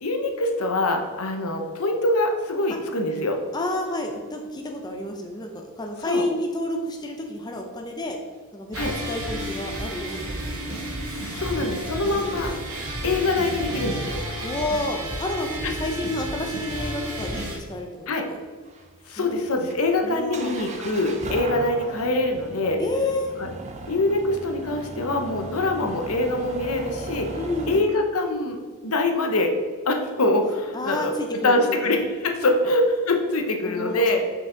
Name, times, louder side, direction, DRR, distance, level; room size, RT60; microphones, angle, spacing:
voice 1, 0.0-3.4 6.0-6.2 8.7-8.9 11.0-12.5 13.0-14.2 15.6-15.7 18.1-18.3 19.1-22.8 23.4-23.5 23.9-27.3 27.7-28.6 28.8-29.5 29.8-31.1 31.4-34.2, left 2 dB, 75° left, 4 dB, 0.8 m, -24 dB
voice 2, 3.5-8.2 8.5-10.8 11.5-12.3 14.4-18.4 19.2-20.5 22.8-23.3 27.4-27.8 30.7-32.0 33.7-34.1, left 1 dB, 20° left, 2 dB, 0.5 m, -30 dB
sound 1, 8.7-17.6, right 1 dB, 80° right, 1.5 m, -32 dB
sound 2, 18.7-27.8, right 2 dB, 30° right, 0.5 m, -37 dB
5.8 x 4.9 x 3.8 m, 1.5 s
head